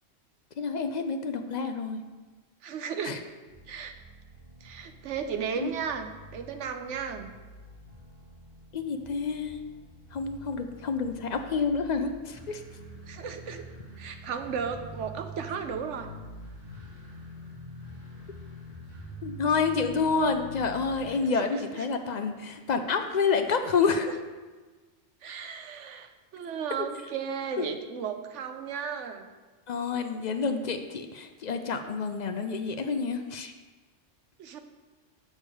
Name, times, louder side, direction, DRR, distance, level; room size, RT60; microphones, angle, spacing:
voice 1, 0.6-2.0 3.0-3.2 5.6-5.7 8.7-9.6 10.1-12.6 19.2-24.1 27.6-27.7 29.7-33.5, left 5 dB, 60° left, 7 dB, 0.4 m, -28 dB
voice 2, 2.6-3.2 3.7-3.9 4.6-7.3 13.1-13.6 14.0-16.1 21.2-21.8 24.0-24.1 25.2-29.3 34.4-34.6, right 6 dB, 70° right, 7 dB, 1.0 m, -35 dB
sound 1, 3.5-21.1, equal, 45° right, 2.8 m, -46 dB
7.0 x 6.4 x 4.8 m, 1.3 s
omnidirectional pair, 1.3 m